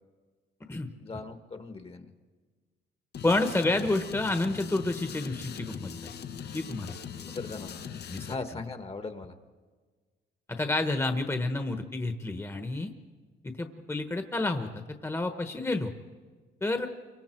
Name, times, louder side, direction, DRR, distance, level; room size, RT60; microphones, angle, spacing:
voice 1, 1.0-2.1 7.1-9.4, left 3 dB, 30° left, 8 dB, 1.3 m, -39 dB
sound 1, 3.1-8.4, left 8 dB, 60° left, 0.9 m, -41 dB
voice 2, 3.2-6.1 6.5-6.9 8.1-8.3 10.5-12.9 13.4-14.7 15.0-15.9 16.6-16.9, left 2 dB, 15° left, 7 dB, 1.2 m, -29 dB
28.5 x 24.0 x 4.5 m, 1.4 s
cardioid pair, 105°, 19 cm